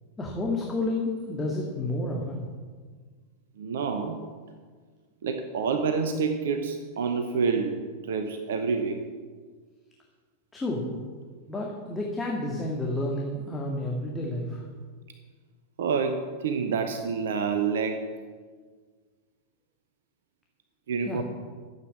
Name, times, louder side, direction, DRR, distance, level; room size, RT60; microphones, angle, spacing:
voice 1, 0.2-2.4 10.5-10.9 11.5-14.7 21.0-21.2, left 2 dB, 10° left, -2 dB, 2.0 m, -30 dB
voice 2, 3.6-4.2 5.2-9.0 15.8-18.1 20.9-21.2, right 5 dB, 60° right, 7 dB, 1.0 m, -28 dB
13.5 x 8.3 x 7.5 m, 1.6 s
figure-of-eight pair, 90°, 0 cm